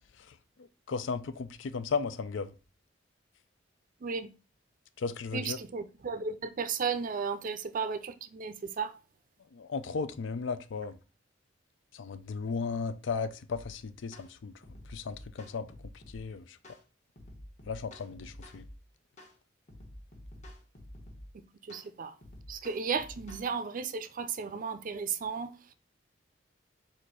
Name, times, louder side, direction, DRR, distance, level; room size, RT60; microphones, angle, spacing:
voice 1, 0.2-2.5 5.0-5.6 9.5-11.0 11.9-14.5 14.9-15.7 16.1-16.6 17.7-18.6, left 5 dB, 70° left, 0.4 m, -35 dB
voice 2, 5.3-9.0 21.3-22.1 22.5-25.7, right 5 dB, 45° right, 0.4 m, -34 dB
sound 1, 13.5-13.7 14.1-14.3 14.6-16.2 16.6-16.8 17.2-18.8 19.2-19.4 19.7-21.3 21.7-21.9 22.2-23.5, left 1 dB, 35° left, 1.1 m, -49 dB
4.2 x 2.6 x 4.6 m
head